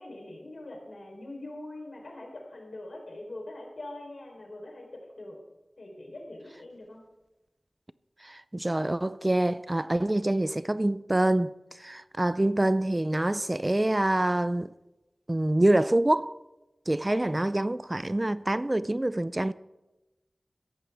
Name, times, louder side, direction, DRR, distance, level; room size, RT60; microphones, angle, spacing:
voice 1, 0.0-5.4 5.8-7.0 17.0-17.3, left 1 dB, 85° left, 3.7 m, -43 dB
voice 2, 8.2-14.7 15.3-16.3 16.9-19.5, right 1 dB, 30° right, 0.4 m, -26 dB
15.5 x 14.0 x 3.5 m
wide cardioid pair, 45°, 0 cm